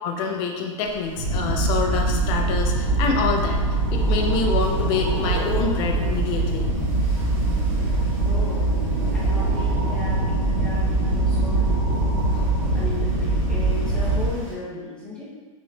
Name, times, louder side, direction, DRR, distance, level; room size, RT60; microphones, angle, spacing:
voice 1, 0.0-3.6 3.9-6.7, left 5 dB, 25° left, 1 dB, 0.4 m, -26 dB
Wind, 0.8-14.5, equal, 65° right, 1.2 m, -37 dB
sound 1, 1.2-14.3, right 2 dB, 45° right, 0.9 m, -23 dB
voice 2, 7.7-11.8 12.7-15.3, left 2 dB, 5° left, -8 dB, 0.9 m, -36 dB
3.7 x 3.0 x 3.2 m, 1.4 s
supercardioid pair, 160°, 17 cm